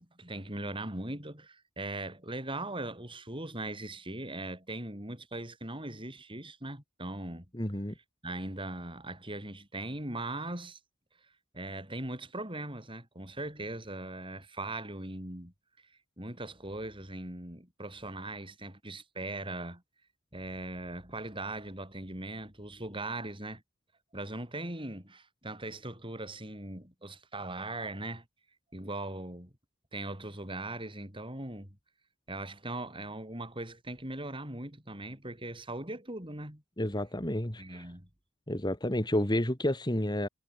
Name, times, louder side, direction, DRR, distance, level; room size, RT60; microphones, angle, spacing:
voice 1, 0.0-7.5 8.2-10.8 11.5-15.5 16.2-19.8 20.3-23.6 24.1-28.2 28.7-29.5 29.9-31.8 32.3-36.6 37.6-38.1, right 2 dB, 25° right, 7.9 m, -40 dB
voice 2, 7.5-7.9 36.8-37.9 38.5-40.3, left 1 dB, 20° left, 2.4 m, -30 dB
head